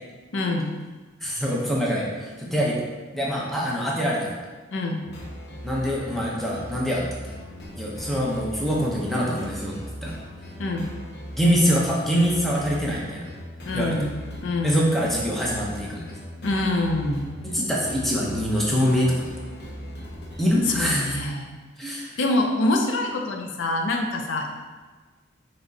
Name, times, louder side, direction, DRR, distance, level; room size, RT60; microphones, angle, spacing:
voice 1, 0.3-0.8 4.7-5.0 10.6-10.9 13.6-14.9 16.4-17.3 20.7-21.5 21.9-24.7, left 2 dB, 80° left, 2 dB, 0.5 m, -25 dB
voice 2, 1.2-2.8 3.1-4.3 5.6-7.0 7.7-10.1 11.4-13.2 13.7-14.0 14.6-16.0 17.4-19.2 20.4-21.2 21.8-22.1, equal, ahead, -5 dB, 0.7 m, -24 dB
sound 1, 5.0-21.2, equal, 60° left, 0.8 m, -39 dB
5.8 x 3.1 x 2.7 m, 1.3 s
head